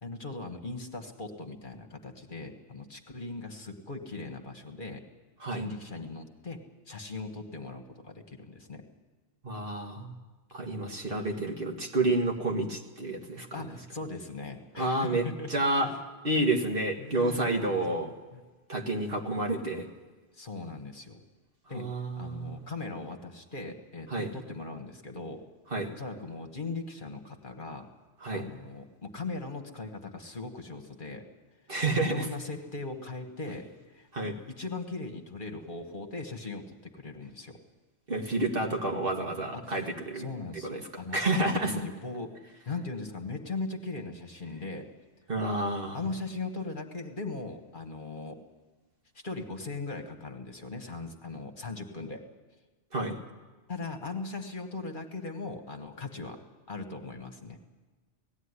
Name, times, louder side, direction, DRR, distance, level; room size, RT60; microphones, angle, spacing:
voice 1, 0.0-5.0 5.5-6.6 6.9-8.8 13.5-15.5 15.8-16.0 16.3-16.6 17.0-18.0 18.3-18.4 20.3-21.2 21.7-21.9 22.2-25.4 25.9-27.9 28.3-31.2 32.0-33.7 33.9-34.1 34.5-37.6 39.5-39.8 40.2-41.2 41.5-42.4 42.7-44.9 45.9-48.4 49.2-52.2 53.7-56.4 56.7-57.6, left 3 dB, 45° left, 4 dB, 1.7 m, -39 dB
voice 2, 9.4-10.1 10.5-13.5 14.8-15.9 16.2-18.1 18.7-19.9 21.7-22.6 24.1-24.3 25.7-25.9 28.2-28.5 31.7-32.3 34.1-34.4 38.1-40.3 40.6-40.8 41.1-41.7 45.3-46.0 52.9-53.2, right 2 dB, 50° right, 2 dB, 2.0 m, -29 dB
18.5 x 14.5 x 9.8 m, 1.3 s
omnidirectional pair, 1.2 m